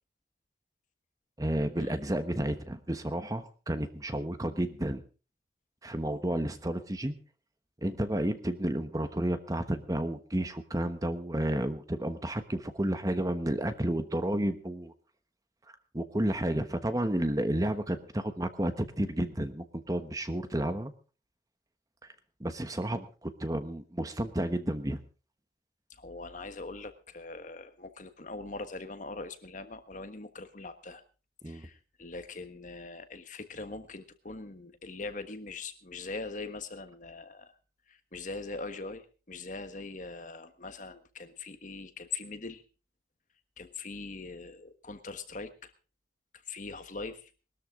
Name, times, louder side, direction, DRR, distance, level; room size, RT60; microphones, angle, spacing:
voice 1, 1.4-5.0 5.8-7.2 7.8-14.9 15.9-20.9 22.4-25.0 31.4-31.7, right 1 dB, 20° right, 9 dB, 1.1 m, -31 dB
voice 2, 25.9-31.0 31.4-37.6 37.9-42.6 43.6-45.7 46.4-47.3, left 3 dB, 45° left, 9 dB, 1.4 m, -42 dB
21.0 x 13.0 x 3.7 m, 0.35 s
head